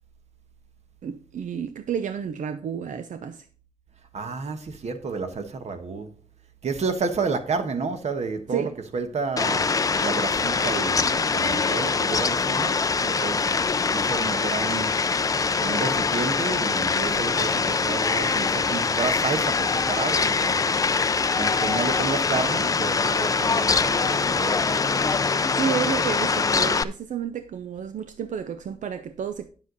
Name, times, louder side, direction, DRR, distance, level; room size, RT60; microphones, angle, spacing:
voice 1, 1.0-3.5 8.5-8.8 25.5-29.5, right 7 dB, 90° right, 0.6 m, -31 dB
voice 2, 4.1-6.1 6.6-9.6 10.0-13.5 13.8-14.9 15.6-20.6 21.3-24.9, right 4 dB, 60° right, 1.3 m, -31 dB
Fowl, 9.4-26.8, left 4 dB, 30° left, 0.4 m, -23 dB
9.7 x 7.4 x 4.0 m
wide cardioid pair, 170°, 13 cm